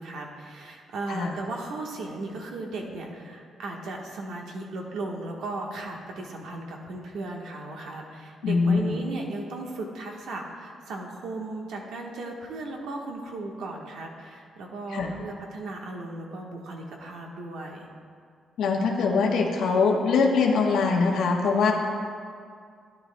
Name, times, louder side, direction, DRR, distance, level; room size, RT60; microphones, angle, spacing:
voice 1, 0.0-17.9, right 2 dB, 85° right, 0 dB, 1.2 m, -36 dB
voice 2, 8.4-9.0 14.9-15.1 18.6-21.7, left 4 dB, 85° left, 0 dB, 1.0 m, -23 dB
12.5 x 10.5 x 2.2 m, 2.2 s
cardioid pair, 155°, 0 cm